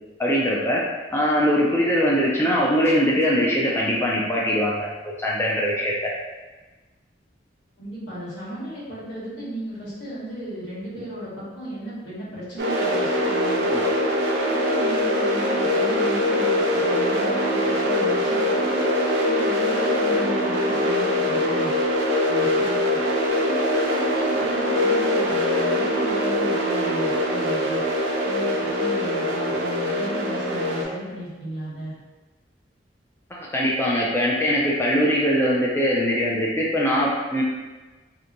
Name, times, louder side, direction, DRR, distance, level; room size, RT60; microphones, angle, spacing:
voice 1, 0.2-0.8 1.1-6.1 13.7-13.9 33.3-37.4, equal, 15° left, -4 dB, 0.3 m, -22 dB
voice 2, 7.8-13.8 14.5-18.8 19.2-21.7 22.2-23.0 23.4-27.8 28.2-31.9, right 1 dB, 80° left, -9 dB, 1.3 m, -35 dB
sound 1, 12.6-30.8, left 1 dB, 70° right, 0.5 m, -23 dB
2.8 x 2.1 x 2.5 m, 1.2 s
head